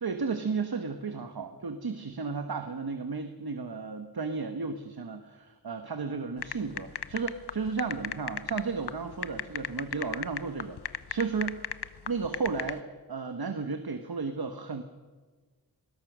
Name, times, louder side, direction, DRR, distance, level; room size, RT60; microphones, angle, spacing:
voice 1, 0.0-11.7 12.0-12.8 13.1-14.8, right 4 dB, 65° right, 7 dB, 1.5 m, -33 dB
sound 1, 6.4-12.8, left 8 dB, 75° left, 0.9 m, -35 dB
22.5 x 20.5 x 6.3 m, 1.4 s
wide cardioid pair, 75°, 40 cm